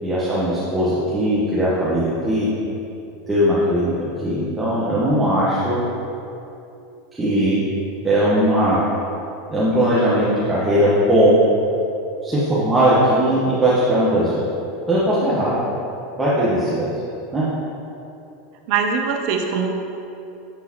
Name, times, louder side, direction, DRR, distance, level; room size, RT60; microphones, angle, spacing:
voice 1, 0.0-2.5 3.3-3.9 4.2-5.8 7.1-7.6 8.0-8.8 9.5-11.4 12.2-14.4 14.9-15.6 16.2-16.9 17.3-17.4, right 1 dB, 15° right, -10 dB, 1.3 m, -19 dB
voice 2, 18.7-19.7, right 5 dB, 55° right, 3 dB, 0.7 m, -22 dB
9.4 x 3.8 x 3.0 m, 2.8 s
figure-of-eight pair, 85°, 0 cm